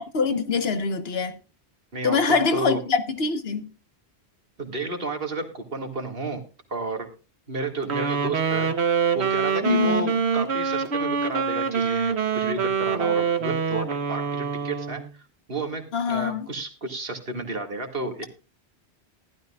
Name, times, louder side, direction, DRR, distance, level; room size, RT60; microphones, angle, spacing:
voice 1, 0.0-1.3 2.0-3.7 9.6-10.1 15.9-16.5, left 5 dB, 70° left, 1.4 m, -24 dB
voice 2, 1.9-2.8 4.6-6.4 6.7-7.1 7.5-15.0 15.5-18.3, right 2 dB, 60° right, 2.2 m, -32 dB
Wind instrument woodwind instrument, 7.8-15.1, right 6 dB, 80° right, 1.3 m, -25 dB
15.0 x 12.0 x 2.4 m
omnidirectional pair, 1.1 m